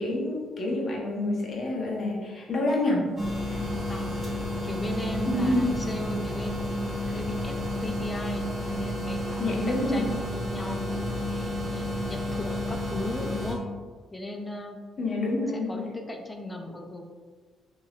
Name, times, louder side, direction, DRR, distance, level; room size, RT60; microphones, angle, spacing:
voice 1, 0.0-3.1 3.4-3.7 5.3-5.7 9.4-10.0 15.0-15.9, left 2 dB, 50° left, -2 dB, 0.8 m, -28 dB
Fluorescent Lightbulb Hum, 3.2-13.5, left 1 dB, 30° right, 0.9 m, -31 dB
voice 2, 3.9-4.2 4.6-13.6 14.1-14.8 15.5-17.0, left 2 dB, 15° left, 3 dB, 0.4 m, -37 dB
3.3 x 2.7 x 2.3 m, 1.5 s
cardioid pair, 90°, 0 cm